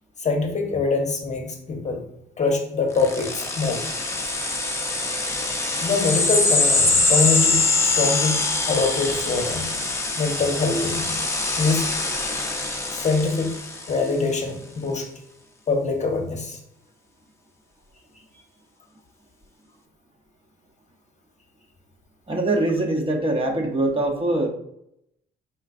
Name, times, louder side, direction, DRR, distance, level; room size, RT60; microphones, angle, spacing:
voice 1, 0.2-2.0 2.4-3.8 5.8-9.7 10.2-11.2 11.6-11.9 12.9-13.6 13.9-15.1 15.7-16.6, left 4 dB, 35° left, 2 dB, 0.9 m, -24 dB
sound 1, 3.0-14.1, left 3 dB, 15° left, 0.6 m, -24 dB
voice 2, 22.3-24.5, right 2 dB, 25° right, 1 dB, 0.8 m, -23 dB
4.5 x 3.7 x 2.5 m, 0.76 s
cardioid pair, 90°, 20 cm